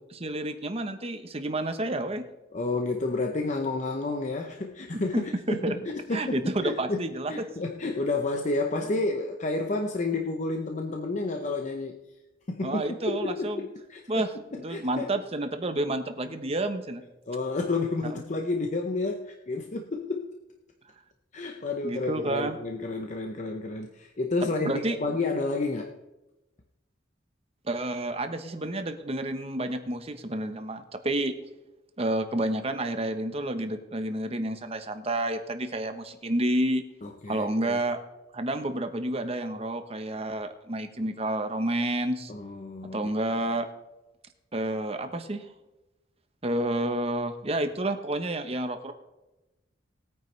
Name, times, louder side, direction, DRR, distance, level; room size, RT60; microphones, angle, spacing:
voice 1, 0.1-2.2 4.9-5.2 5.5-5.7 6.1-7.3 12.6-13.6 14.1-14.3 14.6-17.0 18.1-18.2 21.8-22.6 24.6-25.0 27.7-31.3 32.0-36.8 37.3-38.0 38.3-42.3 42.9-43.7 44.5-45.5 46.4-48.9, right 1 dB, 30° right, 7 dB, 1.0 m, -30 dB
voice 2, 2.5-12.0 12.5-15.1 17.3-20.4 21.3-25.9 37.0-37.8 42.3-43.1, left 3 dB, 40° left, 3 dB, 0.7 m, -30 dB
19.5 x 9.4 x 3.3 m, 1.0 s
head